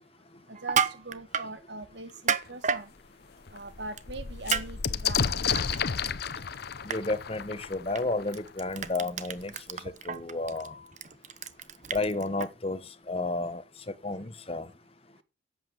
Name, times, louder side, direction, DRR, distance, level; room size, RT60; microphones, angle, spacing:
voice 1, 0.5-2.9 3.5-5.3, right 2 dB, 60° right, 1.5 m, -41 dB
Crushing, 0.6-1.5 2.1-2.8 4.0-4.1 4.5-4.6 5.0-6.1 6.4-6.6 6.9-7.0 7.9-8.0 8.3-12.5, right 6 dB, 40° right, 1.0 m, -30 dB
sound 1, 2.4-2.5 3.0-3.1 3.3-8.9 9.9-10.0 10.2-10.8, left 7 dB, 55° left, 0.7 m, -32 dB
voice 2, 6.8-9.8 10.0-10.7 11.9-13.6 14.0-14.7, left 2 dB, 30° left, 1.3 m, -32 dB
12.0 x 8.4 x 9.2 m
head